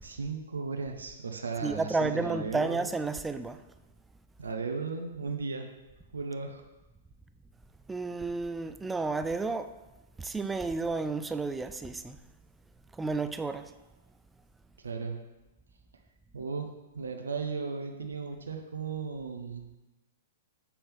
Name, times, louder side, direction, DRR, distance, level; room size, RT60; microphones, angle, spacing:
voice 1, 0.0-2.9 4.4-5.7 6.1-6.6 14.8-15.2 16.3-19.7, right 4 dB, 80° right, 0.8 m, -36 dB
voice 2, 1.6-3.6 7.9-9.7 10.2-12.2 12.9-13.7, right 3 dB, 10° right, 0.3 m, -31 dB
7.1 x 4.3 x 3.5 m
hypercardioid pair, 115°, 0 cm